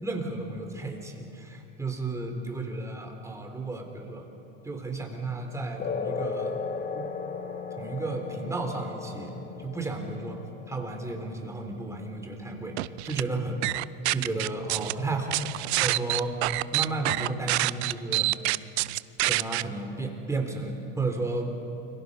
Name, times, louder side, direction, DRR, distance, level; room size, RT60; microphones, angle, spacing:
voice 1, 0.0-4.3 4.6-6.6 6.9-7.1 7.8-10.4 10.7-12.7 13.0-13.7 14.1-15.4 15.8-16.4 16.7-18.3 19.3-21.5, right 3 dB, 10° right, 2 dB, 3.7 m, -33 dB
sound 1, 5.8-12.8, left 5 dB, 30° left, 1.5 m, -36 dB
sound 2, 12.8-13.2 13.6-14.9 15.3-19.6, right 20 dB, 80° right, 0.6 m, -26 dB
29.5 x 23.0 x 5.6 m, 2.7 s
supercardioid pair, 120°, 32 cm